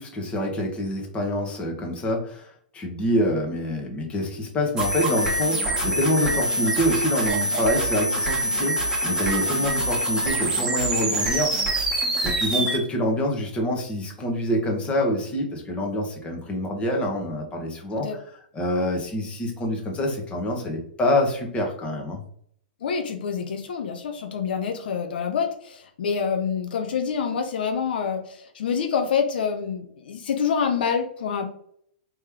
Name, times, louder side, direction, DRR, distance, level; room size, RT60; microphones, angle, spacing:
voice 1, 0.0-11.8 12.2-22.2, left 1 dB, 20° left, 1 dB, 1.1 m, -26 dB
sound 1, 4.8-12.8, right 1 dB, 10° right, 1.3 m, -25 dB
voice 2, 22.8-31.5, left 6 dB, 75° left, 5 dB, 0.6 m, -27 dB
3.2 x 3.0 x 3.5 m, 0.65 s
hypercardioid pair, 125°, 5 cm